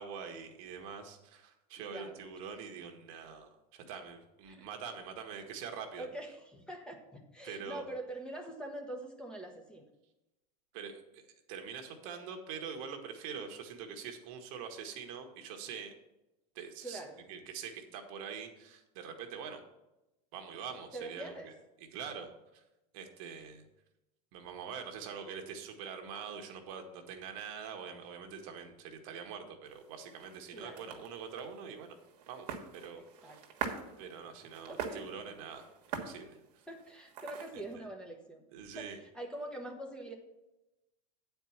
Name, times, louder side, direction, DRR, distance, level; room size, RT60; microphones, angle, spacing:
voice 1, 0.0-6.1 7.4-7.9 10.7-11.2 11.5-15.9 16.5-17.0 17.3-19.6 20.3-21.5 21.9-22.3 22.5-22.6 22.9-23.6 24.3-31.9 32.3-32.5 32.7-33.5 34.0-35.7 36.0-36.4 38.5-39.0, right 6 dB, 60° right, 4 dB, 1.4 m, -44 dB
voice 2, 1.8-2.2 4.5-4.7 6.0-9.9 16.8-17.2 20.9-21.5 30.5-31.0 33.0-33.4 33.6-33.8 34.7-35.1 36.7-38.4 38.7-40.1, right 1 dB, 5° left, 2 dB, 1.1 m, -44 dB
sound 1, 29.7-37.7, right 7 dB, 90° right, 1.5 m, -44 dB
8.9 x 4.6 x 7.1 m, 0.96 s
supercardioid pair, 140°, 20 cm